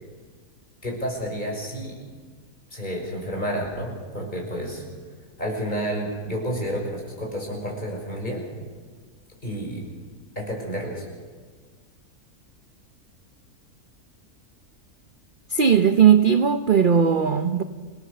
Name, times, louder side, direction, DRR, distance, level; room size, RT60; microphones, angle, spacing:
voice 1, 0.8-2.0 2.7-4.8 5.4-8.4 9.4-9.8 10.4-11.0, equal, 30° left, -1 dB, 6.0 m, -30 dB
voice 2, 15.5-17.6, right 7 dB, 45° right, 9 dB, 0.7 m, -18 dB
29.5 x 18.0 x 6.7 m, 1.5 s
omnidirectional pair, 1.6 m